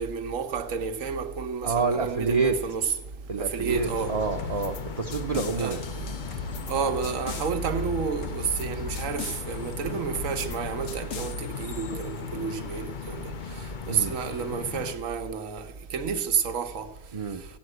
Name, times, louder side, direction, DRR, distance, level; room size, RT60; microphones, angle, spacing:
voice 1, 0.0-2.9 3.4-4.2 5.6-5.8 6.7-13.3 13.9-16.9, right 6 dB, 80° right, 1.4 m, -30 dB
voice 2, 1.6-2.6 3.3-5.8 13.9-14.2 17.1-17.4, right 4 dB, 35° right, 0.7 m, -28 dB
sound 1, 1.6-10.9, right 3 dB, 65° right, 1.3 m, -40 dB
sound 2, 3.7-14.9, left 7 dB, 45° left, 0.7 m, -37 dB
sound 3, 4.4-4.8 5.1-6.7 7.0-7.5 8.2-8.7 8.9-9.4 10.1-10.6 10.9-11.3, left 6 dB, 80° left, 1.4 m, -39 dB
16.5 x 8.6 x 7.9 m
omnidirectional pair, 1.3 m